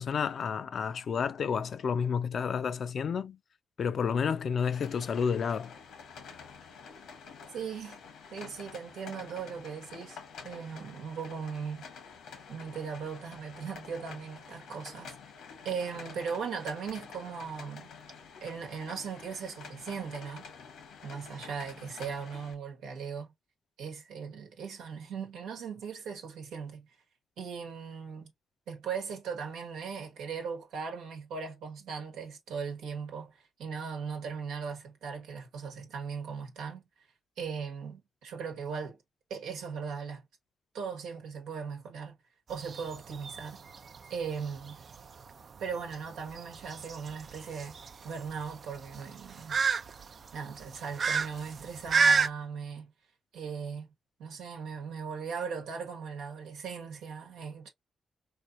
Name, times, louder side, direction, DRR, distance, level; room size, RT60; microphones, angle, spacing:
voice 1, 0.0-3.4 3.8-5.8, left 6 dB, 60° left, 0.5 m, -30 dB
sound 1, 4.6-22.5, left 5 dB, 85° left, 1.1 m, -49 dB
voice 2, 7.5-8.0 8.3-10.2 10.4-11.9 12.5-15.1 15.6-17.9 18.4-20.5 21.0-23.3 23.8-26.9 27.4-28.3 28.7-36.8 37.4-39.0 39.3-40.3 40.7-42.2 42.5-43.6 44.1-44.8 45.6-47.7 48.0-49.6 50.3-52.9 53.3-53.9 54.2-57.7, right 6 dB, 85° right, 1.2 m, -38 dB
sound 2, 42.5-52.3, right 5 dB, 55° right, 0.4 m, -31 dB
4.1 x 3.2 x 2.4 m
supercardioid pair, 60°, 0 cm